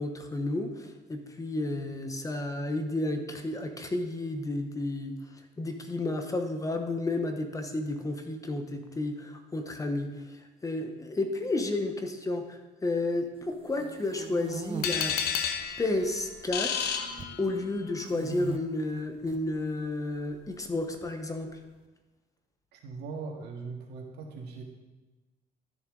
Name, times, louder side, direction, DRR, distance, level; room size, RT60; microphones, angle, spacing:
voice 1, 0.0-5.2 5.6-15.1 15.8-17.1 17.4-21.5, left 2 dB, 20° left, 5 dB, 1.0 m, -32 dB
sound 1, 13.5-14.9 15.5-16.1 16.4-17.4 18.0-18.6 19.1-19.4 20.5-21.4, right 6 dB, 30° right, 0.7 m, -40 dB
sound 2, 14.8-17.9, left 7 dB, 70° left, 0.9 m, -31 dB
voice 2, 22.7-24.6, right 4 dB, 80° right, 0 dB, 1.9 m, -40 dB
12.5 x 7.0 x 3.9 m, 1.2 s
cardioid pair, 110°, 17 cm